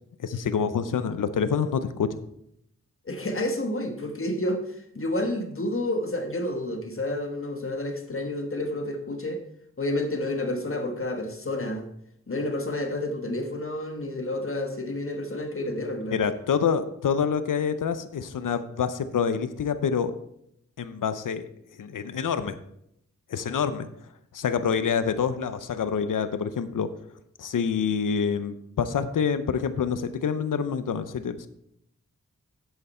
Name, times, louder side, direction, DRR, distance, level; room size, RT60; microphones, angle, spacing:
voice 1, 0.2-2.1 16.1-20.1 20.8-21.4 21.8-22.6 23.3-23.9 24.3-26.9 27.4-31.5, left 6 dB, 85° left, 12 dB, 0.7 m, -27 dB
voice 2, 3.0-9.4 9.8-11.9 12.3-16.3, left 1 dB, 45° left, 5 dB, 1.2 m, -30 dB
8.0 x 7.9 x 4.3 m, 0.74 s
cardioid pair, 60°, 31 cm